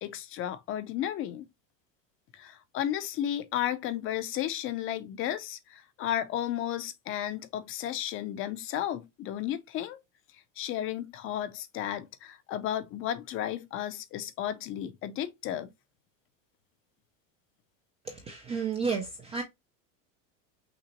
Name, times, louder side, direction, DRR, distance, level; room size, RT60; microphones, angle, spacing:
voice 1, 0.0-1.4 2.3-10.0 10.6-15.7, left 11 dB, 30° left, 0.5 m, -33 dB
voice 2, 18.0-19.4, right 5 dB, 15° right, 0.3 m, -32 dB
5.8 x 3.0 x 2.9 m
supercardioid pair, 155°, 43 cm